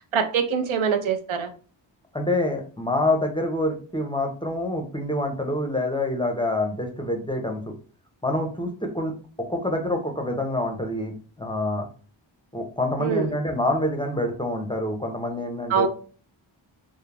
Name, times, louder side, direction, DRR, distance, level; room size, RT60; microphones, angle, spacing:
voice 1, 0.0-1.5 13.0-13.3 15.7-15.9, right 6 dB, 85° right, 6 dB, 0.5 m, -24 dB
voice 2, 2.1-7.6 8.2-9.1 9.5-11.9 12.5-15.9, left 1 dB, 10° left, 3 dB, 0.5 m, -26 dB
2.3 x 2.0 x 3.2 m, 0.40 s
cardioid pair, 45°, 47 cm